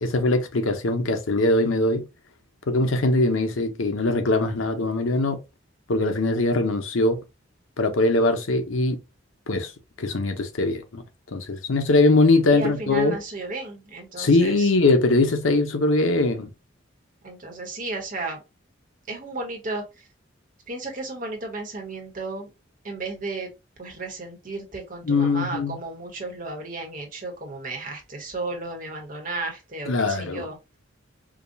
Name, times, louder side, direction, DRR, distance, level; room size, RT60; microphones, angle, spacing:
voice 1, 0.0-2.0 2.7-5.4 5.9-7.2 7.8-9.0 9.5-9.7 10.0-11.0 11.3-13.2 14.2-16.5 25.0-25.7 29.9-30.5, left 2 dB, 85° left, 0.7 m, -21 dB
voice 2, 12.5-14.7 17.2-18.4 19.1-20.1 20.7-22.5 22.8-23.5 23.8-30.6, right 3 dB, 40° right, 1.2 m, -34 dB
4.9 x 2.3 x 2.6 m
head